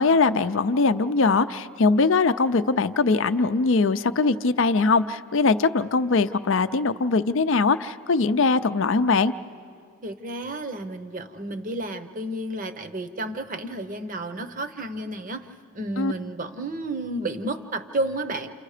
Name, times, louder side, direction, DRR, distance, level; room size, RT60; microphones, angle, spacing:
voice 1, 0.0-9.3 16.0-16.1, left 4 dB, 55° left, 10 dB, 0.5 m, -21 dB
voice 2, 10.0-15.5 15.7-18.5, right 1 dB, 35° right, 9 dB, 0.9 m, -31 dB
29.5 x 28.0 x 5.0 m, 2.3 s
head